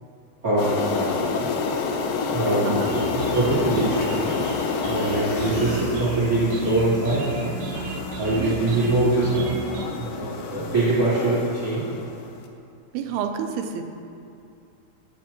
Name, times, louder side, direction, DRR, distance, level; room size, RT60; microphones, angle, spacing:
voice 1, 0.4-1.5 2.3-2.7 3.1-4.3 4.8-7.5 8.2-9.5 10.0-11.8, right 2 dB, 45° right, -9 dB, 1.1 m, -23 dB
sound 1, 0.6-12.4, left 5 dB, 80° left, 2.0 m, -29 dB
voice 2, 2.6-3.0 8.3-8.6 12.9-13.8, right 7 dB, 85° right, 5 dB, 2.5 m, -29 dB
sound 2, 2.9-9.8, right 3 dB, 65° right, 2.3 m, -34 dB
12.5 x 8.6 x 2.9 m, 2.5 s
omnidirectional pair, 4.6 m